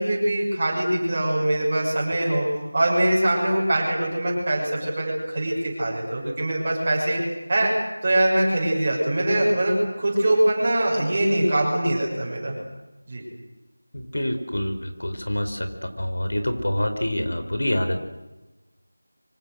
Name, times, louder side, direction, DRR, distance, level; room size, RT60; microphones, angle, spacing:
voice 1, 0.0-2.4 2.7-7.2 7.5-7.7 8.0-12.6 13.1-13.2, right 1 dB, 20° right, -3 dB, 6.5 m, -23 dB
voice 2, 13.9-18.0, left 1 dB, 75° left, 7 dB, 4.9 m, -26 dB
27.0 x 25.0 x 6.7 m, 1.1 s
figure-of-eight pair, 180°, 0 cm